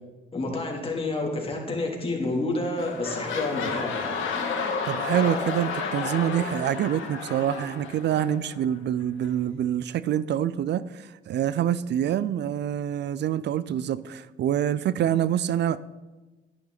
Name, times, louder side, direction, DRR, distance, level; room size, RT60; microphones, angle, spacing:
voice 1, 0.3-4.1, left 2 dB, 30° left, -1 dB, 3.0 m, -29 dB
sound 1, 2.2-2.5 2.7-8.6 9.2-9.3, left 5 dB, 80° left, 1.9 m, -31 dB
voice 2, 4.9-15.8, right 10 dB, 60° right, 18 dB, 0.5 m, -26 dB
10.5 x 9.9 x 4.0 m, 1.2 s
cardioid pair, 90°, 20 cm